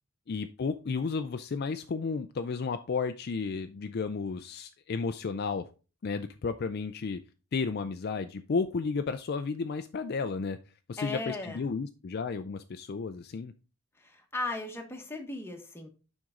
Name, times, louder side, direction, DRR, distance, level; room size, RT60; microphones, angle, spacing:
voice 1, 0.3-5.7 6.0-7.2 7.5-10.6 10.9-13.5, left 4 dB, 45° left, 9 dB, 0.4 m, -33 dB
voice 2, 11.0-11.6 14.0-15.9, left 2 dB, 10° left, 2 dB, 1.2 m, -37 dB
7.6 x 5.4 x 3.7 m, 0.33 s
head